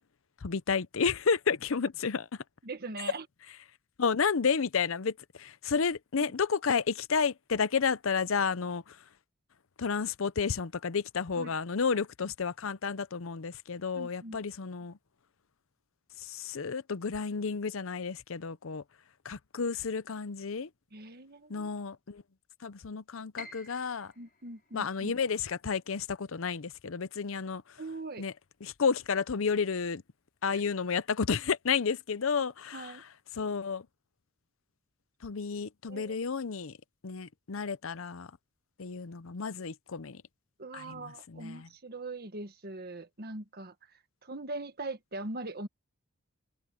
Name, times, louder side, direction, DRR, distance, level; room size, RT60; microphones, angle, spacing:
voice 1, 0.4-2.3 4.0-9.0 9.8-15.0 16.2-18.8 19.2-20.7 21.5-22.2 22.6-24.1 24.7-27.8 28.2-28.3 28.6-30.0 30.4-32.9 33.3-33.9 35.2-36.8 37.0-38.3 38.8-40.2 40.7-41.7, left 5 dB, 70° left, 0.7 m, -31 dB
voice 2, 2.6-3.2 6.2-6.3 11.3-11.5 13.9-14.4 20.9-21.7 24.2-25.1 27.8-28.2 30.5-30.6 32.7-33.0 35.9-36.1 40.6-45.7, right 2 dB, 50° right, 1.5 m, -41 dB
Piano, 23.4-29.3 29.6-30.8 31.2-31.3 32.0-32.3, left 2 dB, 45° left, 6.0 m, -53 dB
head